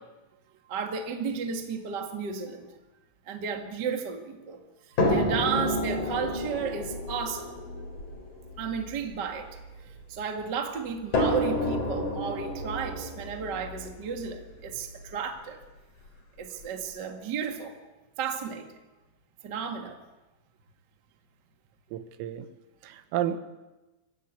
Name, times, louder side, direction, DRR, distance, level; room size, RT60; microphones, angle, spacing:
voice 1, 0.7-2.7 3.3-4.6 5.1-7.4 8.6-9.5 10.1-15.6 16.4-17.7 18.2-18.7 19.4-20.0, right 6 dB, 60° right, 4 dB, 1.1 m, -33 dB
sound 1, 5.0-10.2 11.1-15.1 16.1-16.2 16.6-16.7, left 1 dB, 40° left, 5.0 m, -30 dB
voice 2, 21.9-22.5 22.8-23.4, right 11 dB, 85° right, 10 dB, 3.9 m, -31 dB
23.0 x 16.0 x 8.4 m, 1.1 s
omnidirectional pair, 5.8 m